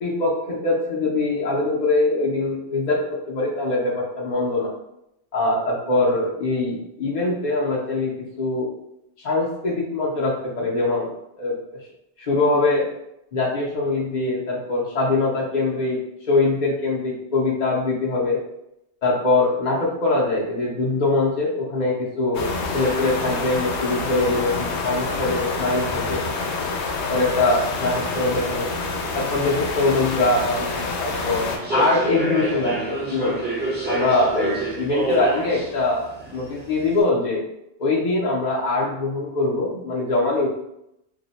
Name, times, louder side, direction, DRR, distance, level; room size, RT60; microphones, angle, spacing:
voice 1, 0.0-3.0 3.3-4.7 5.3-8.7 9.2-11.1 11.4-11.8 12.2-12.8 13.3-16.0 16.3-18.4 19.0-22.5 22.7-24.5 24.8-26.2 27.1-28.7 29.1-33.4 33.9-36.1 36.3-37.4 37.8-40.5, left 2 dB, 50° left, -4 dB, 0.6 m, -22 dB
sound 1, 22.3-31.6, left 3 dB, 85° left, 0.9 m, -27 dB
Human voice / Subway metro underground, 31.4-37.0, right 1 dB, 10° right, 0.6 m, -29 dB
2.7 x 2.1 x 4.0 m, 0.84 s
omnidirectional pair, 1.1 m